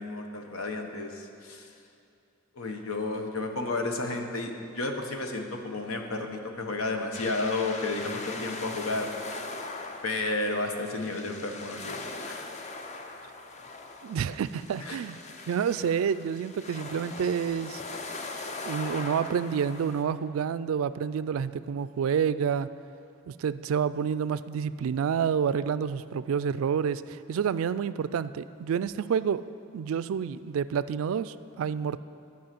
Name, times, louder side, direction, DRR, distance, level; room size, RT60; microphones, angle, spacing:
voice 1, 0.0-1.7 2.6-9.1 10.0-12.0 12.2-12.5 14.8-15.0, left 2 dB, 90° left, 4 dB, 1.0 m, -32 dB
sound 1, 7.1-20.0, left 3 dB, 35° left, 0.6 m, -40 dB
voice 2, 14.0-15.2 15.5-17.8 18.6-22.7 23.3-29.4 29.7-32.0, right 7 dB, 80° right, 16 dB, 0.3 m, -29 dB
11.5 x 5.6 x 7.6 m, 2.5 s
head